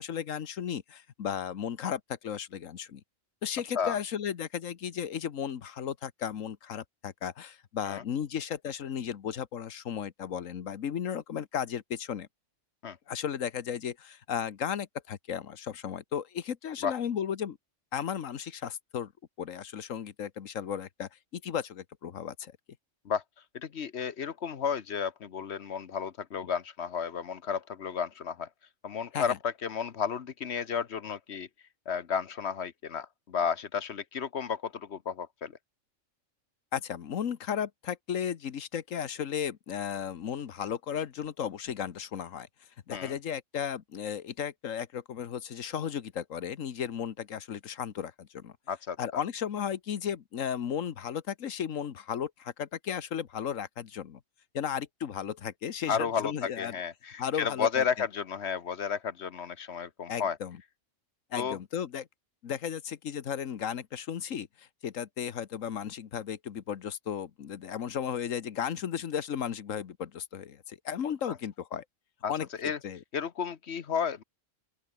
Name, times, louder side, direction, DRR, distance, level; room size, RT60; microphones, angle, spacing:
voice 1, 0.0-3.0 3.4-12.3 13.1-17.6 17.9-19.1 19.4-22.5 29.1-29.4 36.7-42.5 42.9-48.5 49.0-54.2 54.5-56.7 57.2-57.8 60.1-60.6 61.3-62.1 62.4-71.8 72.3-73.0, left 8 dB, 85° left, 1.5 m, -35 dB
voice 2, 23.5-28.5 28.8-31.5 31.9-35.5 42.9-43.2 48.7-49.2 55.9-60.4 61.3-61.6 72.2-72.3 72.6-72.8 73.1-74.2, left 7 dB, 60° left, 1.2 m, -32 dB
open air
omnidirectional pair, 1.3 m